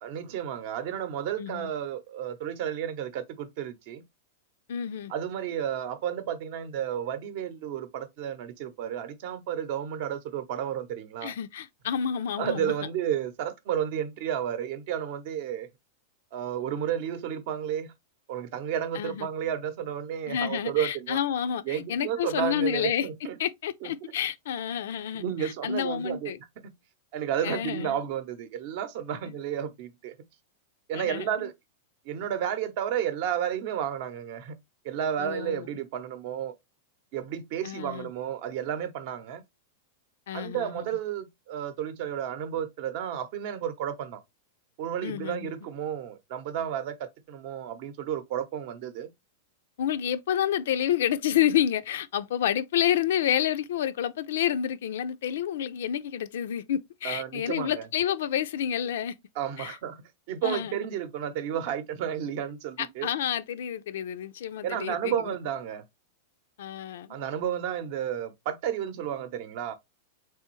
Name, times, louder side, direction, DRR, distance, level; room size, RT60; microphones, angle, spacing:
voice 1, 0.0-4.0 5.1-11.3 12.4-15.7 16.3-17.9 18.3-21.2 21.6-23.4 23.8-24.1 25.1-26.3 27.1-30.1 30.9-31.5 32.0-34.5 34.8-36.5 37.1-39.4 40.3-44.2 44.8-49.1 57.0-57.9 59.3-60.0 60.3-63.1 64.6-65.8 67.1-69.7, right 9 dB, 50° right, 0.7 m, -32 dB
voice 2, 1.4-1.7 4.7-5.1 11.2-12.7 18.9-19.3 20.3-23.1 23.4-26.4 27.4-28.0 30.9-31.3 35.2-35.7 37.6-38.1 40.3-40.8 45.0-45.5 49.8-59.1 59.6-59.8 60.4-60.8 62.8-65.1 66.6-67.2, left 10 dB, 70° left, 0.4 m, -29 dB
3.4 x 3.3 x 3.0 m
supercardioid pair, 160°, 0 cm